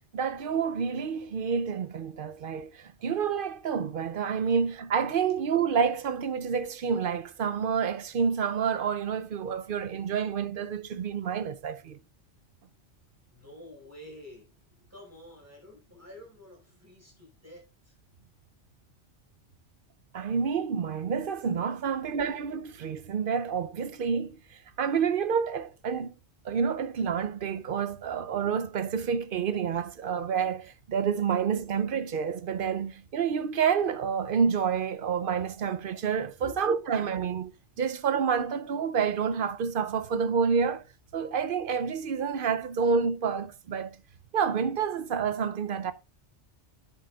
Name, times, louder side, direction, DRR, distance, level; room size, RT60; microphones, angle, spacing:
voice 1, 0.1-12.0 20.1-24.4 24.8-26.1 26.4-37.5 37.8-40.8 41.1-44.0 44.3-45.9, right 6 dB, 55° right, 0.7 m, -28 dB
voice 2, 13.3-17.9 31.6-31.7 36.4-36.8, left 1 dB, 15° right, 4.8 m, -49 dB
10.5 x 8.4 x 2.3 m
omnidirectional pair, 1.2 m